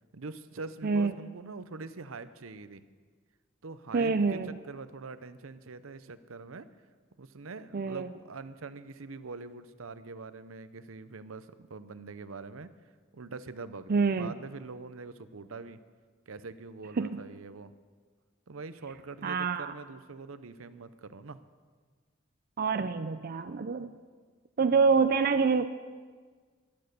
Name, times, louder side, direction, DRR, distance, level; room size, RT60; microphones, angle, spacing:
voice 1, 0.1-2.8 3.6-6.7 7.2-12.7 13.1-15.8 16.3-17.7 18.5-21.4, right 3 dB, 80° right, 13 dB, 0.7 m, -44 dB
voice 2, 3.9-4.5 7.7-8.1 13.9-14.3 17.0-17.2 19.2-19.7 22.6-23.9 24.6-25.7, right 5 dB, 45° right, 10 dB, 0.5 m, -26 dB
14.5 x 12.0 x 6.7 m, 1.5 s
head